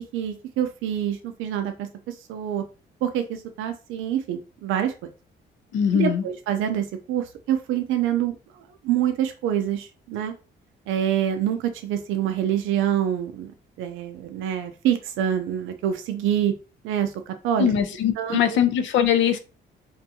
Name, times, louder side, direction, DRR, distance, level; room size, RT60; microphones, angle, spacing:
voice 1, 0.0-2.6 3.0-4.9 5.9-10.3 10.9-13.5 13.8-16.5 16.8-17.7 18.2-18.6, right 10 dB, 85° right, 0.4 m, -26 dB
voice 2, 5.7-6.2 17.6-19.4, left 8 dB, 75° left, 0.5 m, -21 dB
2.5 x 2.3 x 2.7 m
cardioid pair, 90°, 20 cm